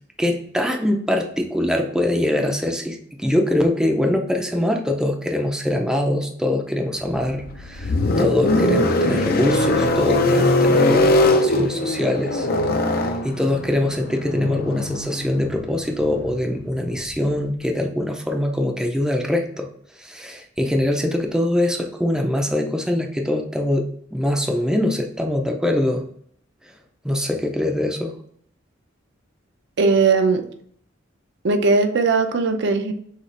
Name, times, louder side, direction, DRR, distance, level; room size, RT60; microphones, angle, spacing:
voice 1, 0.2-12.5 12.9-19.7 20.0-26.0 27.0-28.1, left 1 dB, 5° right, 2 dB, 0.5 m, -23 dB
sound 1, 7.1-17.3, left 2 dB, 50° left, 0.5 m, -21 dB
voice 2, 29.8-30.4 31.4-32.9, right 4 dB, 65° right, 6 dB, 0.6 m, -18 dB
6.5 x 2.4 x 3.2 m, 0.65 s
head